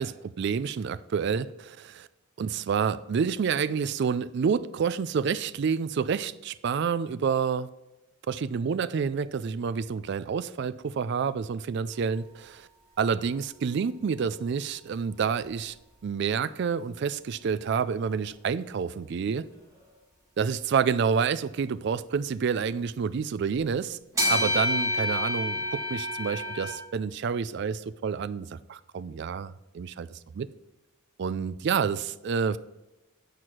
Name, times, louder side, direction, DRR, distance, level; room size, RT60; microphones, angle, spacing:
voice 1, 0.0-2.1 2.4-7.7 8.3-12.7 13.0-15.7 16.0-19.5 20.4-24.0 24.3-30.1 30.3-30.5 31.2-32.6, right 6 dB, 55° right, 16 dB, 0.3 m, -28 dB
sound 1, 15.4-15.5 20.7-20.8 22.5-22.6 24.1-26.7, left 1 dB, 15° right, 2.5 m, -28 dB
8.0 x 4.7 x 5.8 m, 1.0 s
head